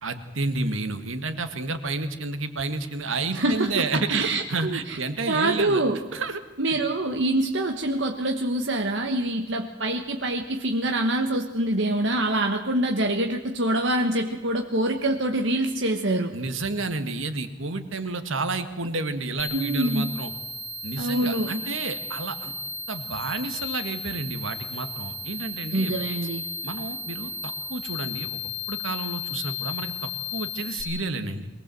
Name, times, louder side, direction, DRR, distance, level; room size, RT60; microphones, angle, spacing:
voice 1, 0.0-5.8 6.1-6.4 6.7-6.8 16.3-20.3 20.8-22.5 22.9-26.0 26.6-28.4 28.7-31.5, right 3 dB, 85° right, 8 dB, 1.8 m, -30 dB
voice 2, 3.3-5.0 5.3-6.0 6.6-16.3 19.5-20.2 21.0-21.5 25.7-26.5, right 1 dB, 70° right, 3 dB, 1.3 m, -25 dB
sound 1, 19.4-30.8, left 5 dB, 75° left, 5.9 m, -35 dB
23.0 x 19.0 x 7.7 m, 1.1 s
head